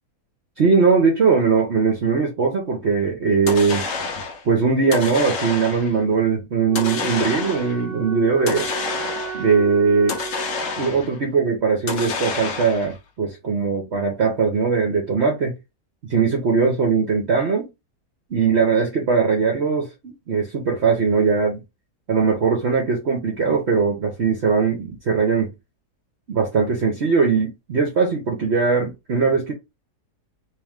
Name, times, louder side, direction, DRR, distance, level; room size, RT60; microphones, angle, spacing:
voice 1, 0.6-3.9 4.4-8.7 9.3-10.2 10.8-15.5 16.1-17.7 18.3-21.6 22.1-25.5 26.3-29.5, right 5 dB, 50° right, 1.0 m, -20 dB
sound 1, 3.5-4.4 4.9-6.0 6.8-7.8 8.5-9.5 10.1-11.2 11.9-13.0, left 5 dB, 60° left, 1.1 m, -28 dB
Wind instrument woodwind instrument, 6.7-11.1, right 7 dB, 30° right, 0.8 m, -34 dB
3.1 x 3.0 x 3.6 m
omnidirectional pair, 1.7 m